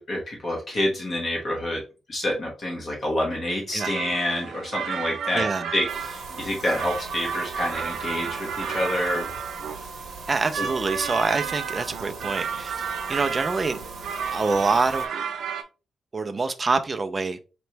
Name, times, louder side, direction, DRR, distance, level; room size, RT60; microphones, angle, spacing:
voice 1, 0.0-1.8 2.1-5.5 5.7-9.4 10.6-10.7, left 1 dB, 35° left, 1.2 m, -28 dB
sound 1, 3.8-15.6, right 7 dB, 80° right, 0.6 m, -32 dB
voice 2, 5.3-5.7 10.3-13.8 14.3-15.1 16.1-17.4, right 3 dB, 25° right, 0.4 m, -26 dB
sound 2, 5.9-15.1, right 4 dB, 50° right, 0.9 m, -39 dB
4.3 x 3.0 x 3.2 m
wide cardioid pair, 170°, 0 cm